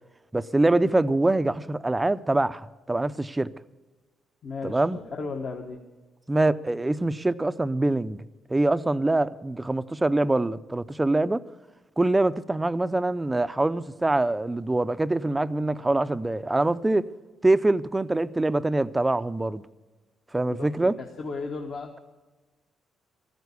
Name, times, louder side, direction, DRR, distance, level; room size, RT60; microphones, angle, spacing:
voice 1, 0.3-3.5 4.6-5.0 6.3-11.4 12.0-17.1 17.4-19.6 20.3-21.0, right 2 dB, 15° right, 0.5 m, -24 dB
voice 2, 4.4-4.8 5.2-5.8 20.6-21.9, left 4 dB, 50° left, 1.2 m, -35 dB
14.5 x 9.3 x 8.3 m
cardioid pair, 90°, 0 cm